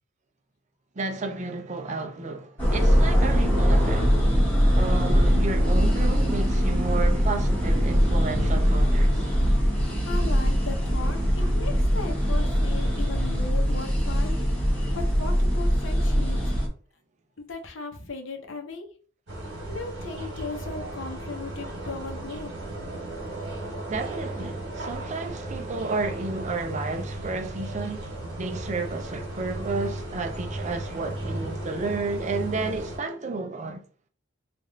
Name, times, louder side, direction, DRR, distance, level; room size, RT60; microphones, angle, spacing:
voice 1, 1.0-4.2 4.8-9.3 11.4-11.5 12.1-12.2 23.9-33.8, right 3 dB, 35° right, 0.4 m, -32 dB
sound 1, 2.6-16.7, equal, 10° left, 1.2 m, -22 dB
voice 2, 10.0-14.4 14.9-16.5 17.5-18.9 19.7-22.5, left 3 dB, 65° left, 0.8 m, -37 dB
sound 2, 19.3-33.0, right 1 dB, 60° right, 1.5 m, -35 dB
3.4 x 2.5 x 3.9 m
head